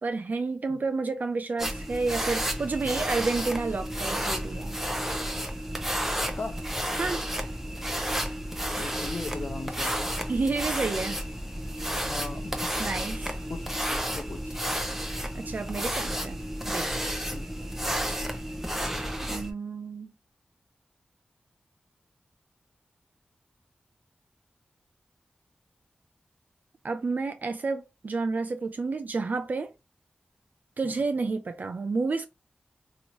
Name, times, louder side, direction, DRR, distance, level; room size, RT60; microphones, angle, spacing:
voice 1, 0.0-4.7 7.0-7.3 10.3-11.2 12.8-13.3 15.3-16.4 16.7-17.0 19.2-20.1 26.8-29.7 30.8-32.2, right 3 dB, 65° right, 0.4 m, -30 dB
sound 1, 1.6-19.5, equal, 10° right, 0.8 m, -31 dB
voice 2, 6.2-6.6 8.7-10.1 12.1-12.6 13.5-14.6 17.3-17.4 30.8-31.0, left 3 dB, 65° left, 0.7 m, -38 dB
3.0 x 2.6 x 3.0 m
cardioid pair, 45°, 3 cm